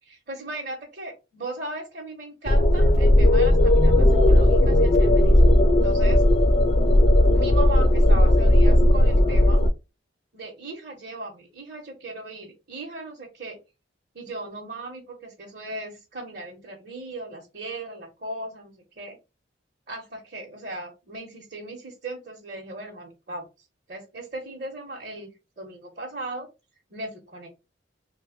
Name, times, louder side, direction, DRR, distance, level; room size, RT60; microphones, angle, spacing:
voice 1, 0.0-5.4 5.8-6.2 7.3-9.6 10.3-13.6 14.1-19.2 19.9-25.3 25.6-26.5 26.9-27.5, right 2 dB, 55° right, -2 dB, 1.0 m, -37 dB
sound 1, 2.4-9.7, left 1 dB, 35° left, 0.4 m, -17 dB
3.2 x 2.3 x 3.5 m, 0.26 s
head